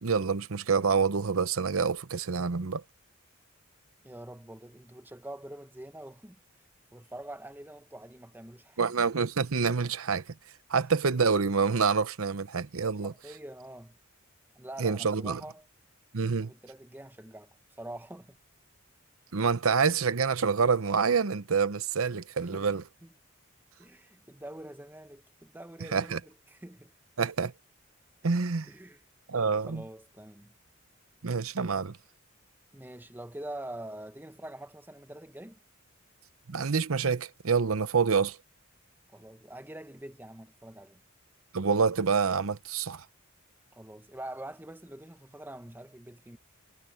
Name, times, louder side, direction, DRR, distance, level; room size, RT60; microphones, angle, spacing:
voice 1, 0.0-2.8 8.8-10.2 10.7-13.1 14.8-15.4 16.1-16.5 19.3-22.8 25.9-26.2 27.2-27.5 28.2-28.7 29.3-29.8 31.2-32.0 36.5-38.4 41.5-43.0, right 5 dB, 85° right, 0.8 m, -27 dB
voice 2, 4.0-6.4 6.9-9.1 13.0-14.0 14.5-15.7 16.4-18.4 22.5-22.7 23.0-23.1 23.8-26.9 28.7-29.0 29.7-30.5 32.7-35.6 39.1-41.0 43.7-46.4, right 1 dB, 10° right, 0.9 m, -45 dB
head